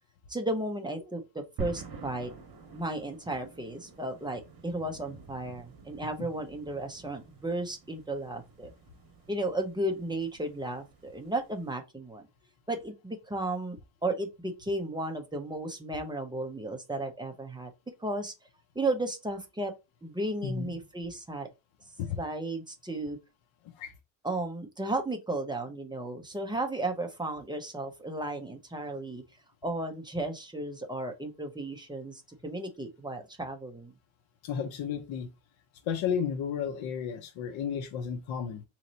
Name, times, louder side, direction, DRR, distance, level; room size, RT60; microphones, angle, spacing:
voice 1, 0.3-2.3 2.7-8.7 9.3-12.3 12.7-17.7 18.0-18.3 18.8-19.7 20.0-21.5 22.2-23.2 24.2-29.2 29.6-33.9, right 2 dB, 10° right, 0.5 m, -34 dB
sound 1, 1.6-11.7, right 4 dB, 45° right, 1.3 m, -47 dB
voice 2, 20.4-20.8 22.0-22.2 23.7-23.9 34.4-35.3 35.9-38.6, left 7 dB, 65° left, 0.7 m, -33 dB
4.1 x 3.1 x 2.6 m
cardioid pair, 150°, 49 cm